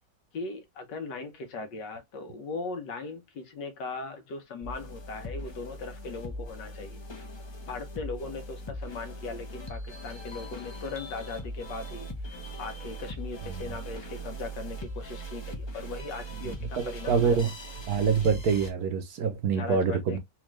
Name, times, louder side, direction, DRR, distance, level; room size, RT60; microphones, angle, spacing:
voice 1, 0.3-7.0 7.7-12.3 12.6-17.4 19.5-20.2, left 4 dB, 80° left, 1.6 m, -39 dB
sound 1, 4.6-18.7, right 1 dB, 35° left, 0.4 m, -40 dB
voice 2, 16.4-17.5 17.9-20.2, right 6 dB, 65° right, 1.2 m, -26 dB
4.3 x 2.4 x 3.0 m
omnidirectional pair, 1.9 m